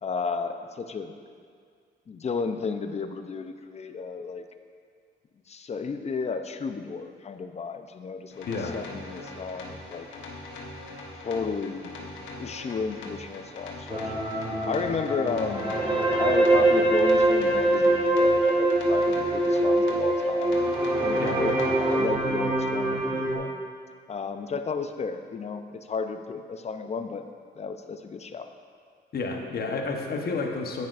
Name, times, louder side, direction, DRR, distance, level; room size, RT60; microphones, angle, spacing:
voice 1, 0.0-1.1 2.1-4.4 5.5-8.5 8.7-10.1 11.2-11.9 12.4-14.2 14.6-15.7 16.2-20.6 21.0-23.6 24.1-27.2 27.6-28.5, left 5 dB, 35° left, 8 dB, 0.6 m, -33 dB
sound 1, 8.3-22.0, left 2 dB, 80° left, 1.3 m, -42 dB
voice 2, 8.5-8.8 21.2-21.4 29.1-30.9, left 4 dB, 50° left, 2 dB, 1.1 m, -30 dB
sound 2, 13.9-23.4, right 1 dB, 25° right, 1.3 m, -23 dB
10.5 x 8.5 x 2.5 m, 2.1 s
cardioid pair, 90°, 20 cm